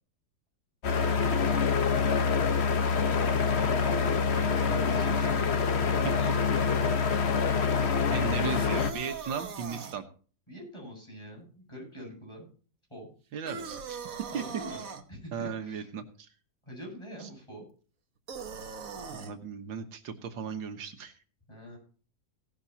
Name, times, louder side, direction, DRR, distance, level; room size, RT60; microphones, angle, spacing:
sound 1, 0.8-8.9, left 5 dB, 40° left, 1.2 m, -26 dB
voice 1, 2.6-4.1 4.4-7.4 10.5-12.5 12.9-13.1 14.3-14.8 15.1-15.9 16.7-17.6 21.5-21.8, equal, 15° left, -1 dB, 8.1 m, -44 dB
voice 2, 8.1-10.1 13.3-14.1 14.3-14.4 15.3-16.3 17.2-17.3 19.1-21.1, right 7 dB, 85° right, 7 dB, 2.0 m, -36 dB
sound 2, 8.4-10.0 13.5-15.0 18.3-19.3, right 5 dB, 50° right, 1.6 m, -40 dB
17.0 x 12.0 x 2.9 m, 0.39 s
omnidirectional pair, 2.0 m